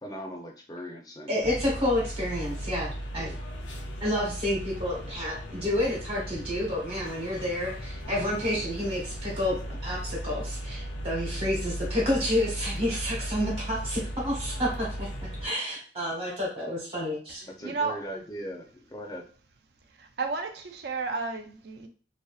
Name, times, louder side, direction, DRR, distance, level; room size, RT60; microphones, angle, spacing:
voice 1, 0.0-1.4 3.2-3.4 17.4-19.2, equal, 20° left, 1 dB, 0.4 m, -39 dB
voice 2, 1.3-3.3 4.0-15.1 15.4-17.4, left 1 dB, 30° right, -4 dB, 1.1 m, -29 dB
sound 1, 1.4-15.5, equal, 80° left, 0.5 m, -36 dB
voice 3, 17.6-18.0 20.0-21.9, right 4 dB, 60° right, 6 dB, 0.4 m, -32 dB
2.6 x 2.1 x 2.3 m, 0.40 s
head